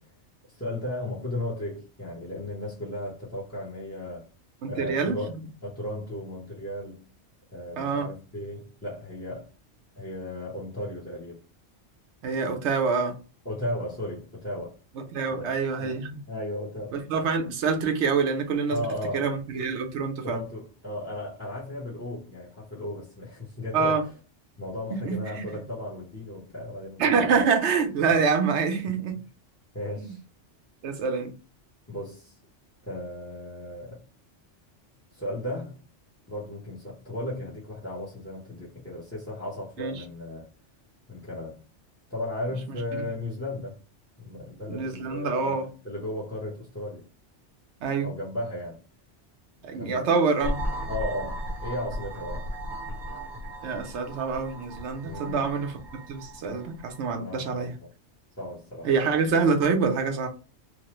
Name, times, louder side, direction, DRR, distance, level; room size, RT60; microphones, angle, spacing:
voice 1, 0.5-4.2 4.7-5.3 5.6-7.1 7.5-9.5 10.0-11.4 13.4-14.7 15.3-15.5 15.8-16.0 16.3-17.0 18.7-19.3 20.2-24.0 24.6-27.4 29.7-30.2 31.9-32.4 32.8-34.0 35.1-35.8 36.3-40.5 41.1-41.6 42.1-43.8 44.2-47.1 48.0-48.8 49.7-50.1 50.9-52.4 55.0-55.5 57.2-57.9 58.4-58.9, left 1 dB, 15° left, 0.7 m, -35 dB
voice 2, 4.6-5.4 7.8-8.1 12.2-13.2 15.0-16.2 16.9-18.9 19.1-20.4 23.7-24.0 24.9-25.4 27.0-29.2 30.0-30.1 30.8-31.3 39.8-40.0 42.7-43.1 44.7-45.7 47.8-48.1 49.6-50.6 53.6-57.7 58.8-60.3, right 5 dB, 75° right, 1.0 m, -26 dB
sound 1, 50.4-57.1, equal, 50° right, 0.8 m, -36 dB
3.0 x 2.1 x 2.9 m
omnidirectional pair, 1.2 m